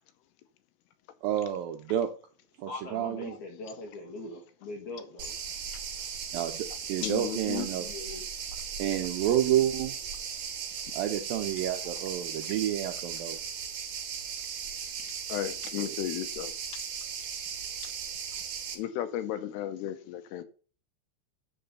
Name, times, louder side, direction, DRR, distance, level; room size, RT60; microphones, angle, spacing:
voice 1, 1.2-2.1 2.6-3.4 6.3-7.9 8.8-10.0 10.9-13.4 15.8-16.0, right 11 dB, 80° right, 2.1 m, -29 dB
voice 2, 2.7-5.4 7.8-8.2, left 2 dB, 60° left, 2.3 m, -41 dB
sound 1, 5.2-18.8, right 7 dB, 55° right, 2.5 m, -37 dB
voice 3, 7.0-7.7 15.3-16.5 18.7-20.4, left 11 dB, 80° left, 2.7 m, -34 dB
9.9 x 3.9 x 6.8 m
omnidirectional pair, 4.9 m